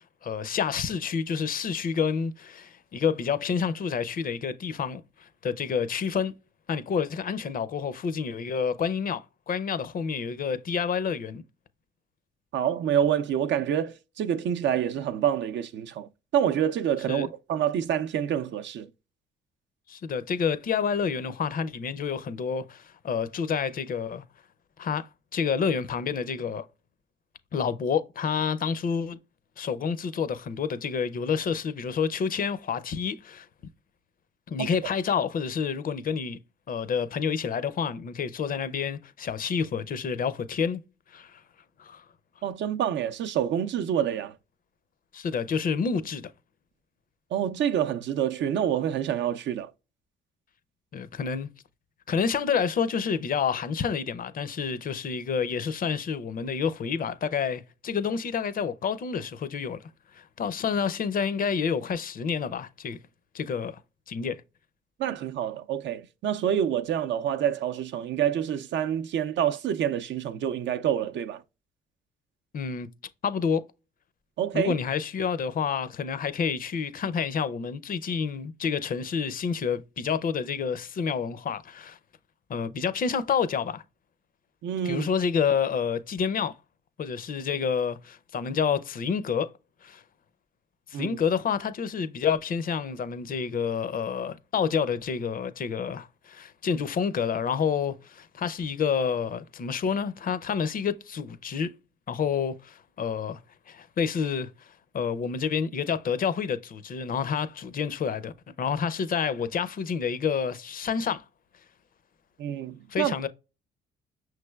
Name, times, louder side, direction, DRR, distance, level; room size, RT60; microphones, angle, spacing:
voice 1, 0.0-6.3 6.7-11.4 17.1-17.3 19.9-24.2 24.8-26.6 27.5-29.2 29.6-33.5 34.5-36.4 36.7-40.8 41.1-41.4 41.8-42.0 45.1-46.3 50.9-51.5 52.1-59.8 60.1-63.0 63.3-63.8 64.1-64.4 72.5-72.9 73.2-73.6 74.5-82.0 82.5-83.8 84.8-86.6 87.0-89.5 89.8-90.0 90.9-101.7 102.1-103.4 103.7-111.2 112.9-113.3, left 6 dB, 45° left, 0.5 m, -29 dB
voice 2, 12.5-18.9 34.6-34.7 42.4-44.4 47.3-49.7 65.0-71.4 74.4-74.7 84.6-85.1 90.9-91.2 112.4-113.1, right 9 dB, 65° right, 0.5 m, -27 dB
5.8 x 3.2 x 2.2 m
cardioid pair, 90°, 20 cm